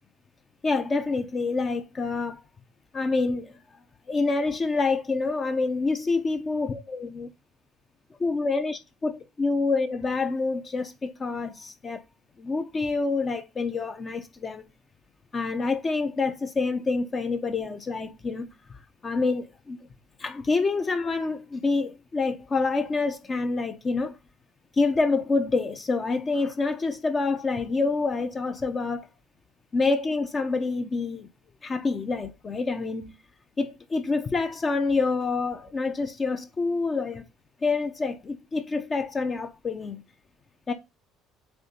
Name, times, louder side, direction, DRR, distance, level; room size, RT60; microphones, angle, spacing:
voice 1, 0.6-2.4 2.9-3.6 4.1-7.3 8.2-12.0 12.4-14.6 15.3-19.8 20.2-24.2 24.7-29.1 29.7-31.3 31.6-33.2 33.6-37.2 37.6-40.0 40.7-40.8, left 3 dB, 20° left, 0.6 m, -27 dB
8.0 x 3.1 x 5.1 m
cardioid pair, 175°, 0 cm